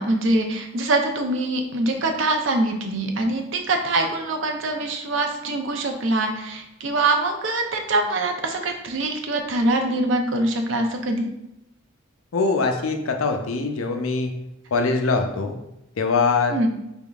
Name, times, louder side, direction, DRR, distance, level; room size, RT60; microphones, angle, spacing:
voice 1, 0.0-11.3 16.5-16.7, right 2 dB, 65° right, 4 dB, 0.6 m, -23 dB
voice 2, 12.3-14.3 14.7-15.6 16.0-16.6, left 4 dB, 80° left, 5 dB, 0.5 m, -22 dB
5.1 x 3.4 x 2.4 m, 0.88 s
head